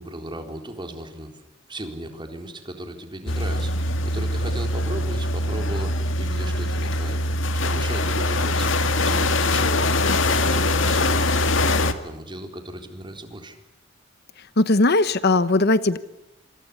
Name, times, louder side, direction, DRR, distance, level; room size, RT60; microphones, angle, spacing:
voice 1, 0.0-1.4 1.7-8.8 9.0-11.5 12.0-13.6, right 1 dB, 25° right, 5 dB, 4.0 m, -36 dB
sound 1, 3.3-11.9, left 2 dB, 70° left, 2.1 m, -22 dB
voice 2, 14.6-16.0, left 2 dB, 55° left, 14 dB, 1.1 m, -18 dB
27.0 x 27.0 x 7.0 m, 0.90 s
head